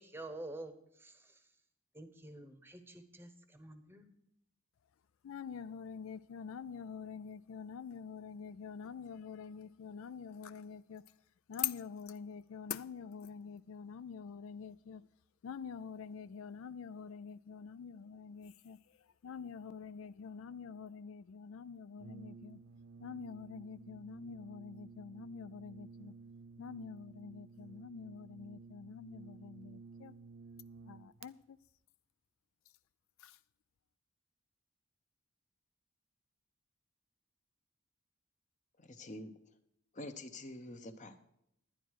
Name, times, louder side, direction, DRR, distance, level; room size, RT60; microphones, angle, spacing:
voice 1, 0.0-1.4 1.9-4.0, right 2 dB, 10° right, 0.9 m, -49 dB
voice 2, 5.2-11.0 11.5-15.1 15.4-22.6 23.0-26.1 26.6-30.1 30.8-31.6 33.2-33.4, left 7 dB, 75° left, 0.4 m, -46 dB
Brass instrument, 22.0-31.3, right 4 dB, 65° right, 0.5 m, -54 dB
voice 3, 38.8-39.3 39.9-41.2, left 1 dB, 35° left, 0.8 m, -46 dB
11.5 x 10.0 x 4.7 m
head